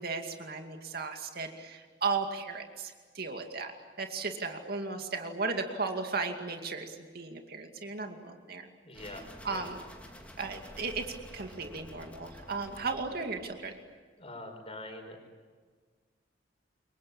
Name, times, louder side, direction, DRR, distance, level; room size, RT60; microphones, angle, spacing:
voice 1, 0.0-3.7 4.0-8.7 9.4-9.8 10.4-11.1 11.3-13.8, right 4 dB, 55° right, 4 dB, 2.4 m, -35 dB
voice 2, 8.8-9.7 14.2-15.2, left 1 dB, 30° left, 5 dB, 5.8 m, -44 dB
sound 1, 8.9-13.9, left 1 dB, 5° left, 2.9 m, -50 dB
28.0 x 23.5 x 8.7 m, 1.5 s
head